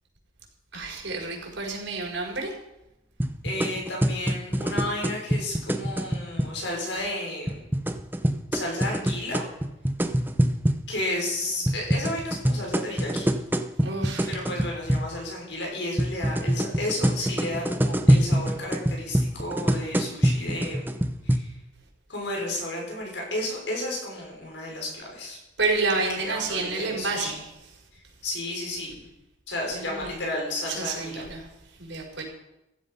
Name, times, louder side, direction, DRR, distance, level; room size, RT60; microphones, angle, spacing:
voice 1, 0.7-2.5 13.8-14.3 25.6-27.4 29.7-30.2 30.7-31.4 31.8-32.2, right 3 dB, 85° right, -1 dB, 5.1 m, -29 dB
sound 1, 3.2-6.5 7.5-10.8 11.7-15.1 16.0-21.4, equal, 10° right, 0.7 m, -25 dB
voice 2, 3.4-7.6 8.5-9.4 10.9-13.3 14.3-20.9 21.2-21.5 22.1-25.4 26.2-27.3 28.2-29.0 29.5-31.3, left 1 dB, 80° left, -1 dB, 6.0 m, -32 dB
15.5 x 11.5 x 5.6 m, 0.90 s
head